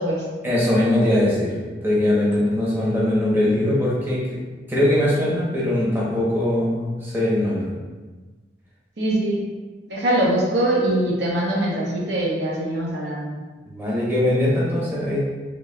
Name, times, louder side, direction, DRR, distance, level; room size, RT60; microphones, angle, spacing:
voice 1, 0.4-1.5 1.8-4.2 4.7-7.7 13.7-15.2, left 1 dB, 10° right, -7 dB, 0.9 m, -21 dB
voice 2, 9.0-9.4 9.9-13.3, right 1 dB, 70° right, -4 dB, 0.8 m, -22 dB
4.0 x 3.3 x 2.2 m, 1.3 s
head